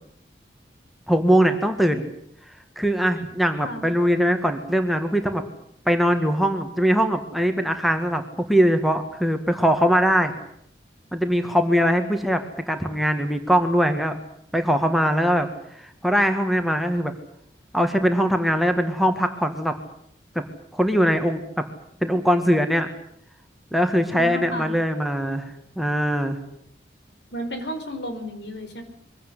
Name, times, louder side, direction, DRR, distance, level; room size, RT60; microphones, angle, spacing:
voice 1, 1.1-2.1 2.8-5.4 5.9-10.3 11.1-12.4 12.7-14.2 14.5-15.5 15.8-17.1 17.7-19.8 20.4-20.5 20.7-21.6 22.0-22.9 23.7-26.4, equal, ahead, 5 dB, 1.8 m, -21 dB
voice 2, 3.6-3.9 24.1-24.7 27.3-28.8, equal, 80° left, 7 dB, 4.8 m, -32 dB
23.5 x 16.5 x 10.0 m, 0.69 s
head